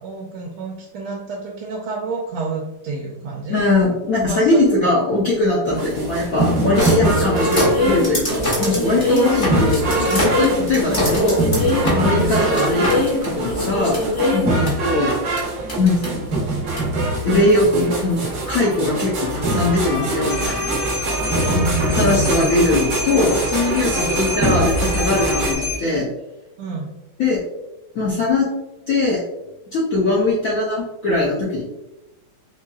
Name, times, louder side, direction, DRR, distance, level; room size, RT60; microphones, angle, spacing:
voice 1, 0.0-3.6 4.3-4.9 5.6-5.8 10.8-11.2 12.0-12.7 14.5-14.8 21.4-22.5 23.9-24.2 26.6-27.0, right 3 dB, 85° right, -2 dB, 1.5 m, -28 dB
voice 2, 3.5-11.4 11.9-14.0 14.3-15.4 15.8-16.2 17.2-20.8 21.9-26.1 27.2-27.4 27.9-28.5 28.9-29.2 29.7-31.6, left 2 dB, 65° left, -6 dB, 0.8 m, -20 dB
sound 1, 5.6-25.5, right 2 dB, 60° right, 0.9 m, -23 dB
sound 2, 6.8-14.7 15.4-15.5 15.7-16.1 16.8-16.9, left 1 dB, 35° left, 0.8 m, -22 dB
sound 3, 20.3-25.8, left 1 dB, 90° left, 2.0 m, -27 dB
4.3 x 2.7 x 2.3 m, 0.93 s
omnidirectional pair, 2.3 m